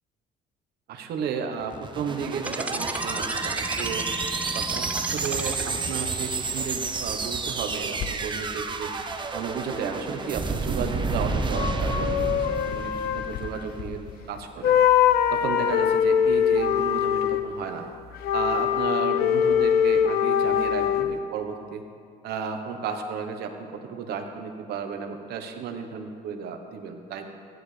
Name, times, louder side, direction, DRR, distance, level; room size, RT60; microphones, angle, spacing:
voice 1, 0.9-4.1 4.5-8.9 9.3-14.8 15.3-17.9 18.3-21.8 22.2-27.3, right 6 dB, 70° right, 5 dB, 1.1 m, -33 dB
sound 1, 1.6-14.0, right 4 dB, 30° right, 0.9 m, -30 dB
sound 2, 2.4-6.0, right 1 dB, 10° right, 0.4 m, -33 dB
sound 3, 8.0-8.1 11.5-14.3 14.6-17.5 18.1-21.1, left 8 dB, 65° left, 0.6 m, -23 dB
15.0 x 11.0 x 3.3 m, 2.3 s
cardioid pair, 110°, 17 cm